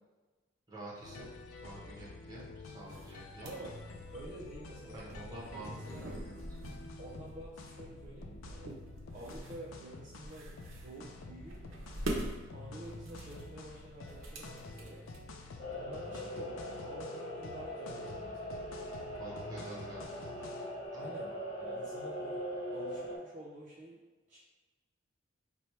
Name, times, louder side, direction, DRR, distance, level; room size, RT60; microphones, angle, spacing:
voice 1, 0.7-1.2 1.6-3.5 4.9-6.4 19.2-20.4 20.9-21.1, right 2 dB, 20° right, -6 dB, 1.0 m, -48 dB
sound 1, 1.0-20.9, left 2 dB, 90° left, 0.4 m, -49 dB
sound 2, 2.7-15.5, right 1 dB, 85° right, 0.6 m, -45 dB
voice 2, 3.4-3.8 4.1-6.0 7.0-8.8 9.1-11.6 12.5-15.0 15.7-18.6 20.9-24.0 24.3-24.4, right 1 dB, 40° right, -6 dB, 0.5 m, -49 dB
sound 3, 15.6-23.2, equal, 30° left, 0.7 m, -41 dB
3.1 x 2.2 x 4.3 m, 1.3 s
head